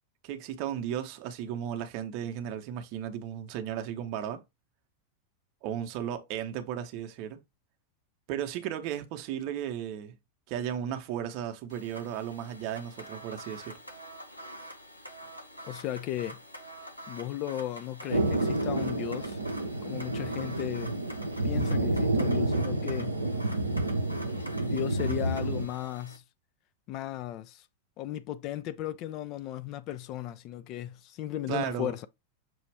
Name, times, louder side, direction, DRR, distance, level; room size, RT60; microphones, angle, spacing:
voice 1, 0.2-4.4 5.6-7.4 8.3-10.1 10.5-13.8 31.5-31.9, right 10 dB, 45° right, 0.8 m, -35 dB
sound 1, 11.7-26.2, equal, 90° left, 0.9 m, -46 dB
voice 2, 15.6-16.4 17.1-19.4 19.8-21.0 21.4-23.2 24.6-26.2 26.9-27.7 28.0-32.1, left 13 dB, 40° left, 0.4 m, -35 dB
Thunder, 18.1-25.7, right 2 dB, 80° right, 0.6 m, -29 dB
6.1 x 2.4 x 3.3 m
figure-of-eight pair, 90°, 0 cm